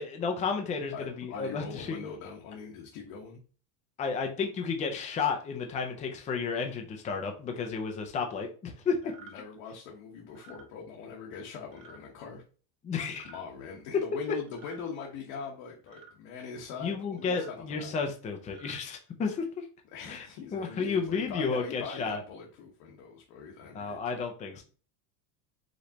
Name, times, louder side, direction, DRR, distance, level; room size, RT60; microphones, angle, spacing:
voice 1, 0.0-2.0 4.0-9.0 12.8-13.2 16.8-19.6 20.1-20.2 20.5-22.2 23.7-24.6, left 5 dB, 15° left, 4 dB, 0.4 m, -32 dB
voice 2, 0.9-3.4 9.0-12.4 13.2-17.9 19.9-24.2, left 6 dB, 60° left, -1 dB, 1.2 m, -42 dB
sound 1, 9.0-9.3 10.3-10.6 11.7-12.0 13.1-13.4 14.5-14.8 15.9-16.1 17.2-17.5 18.4-18.8, right 5 dB, 50° right, 1.5 m, -52 dB
5.1 x 3.2 x 2.8 m, 0.38 s
supercardioid pair, 145°, 50 cm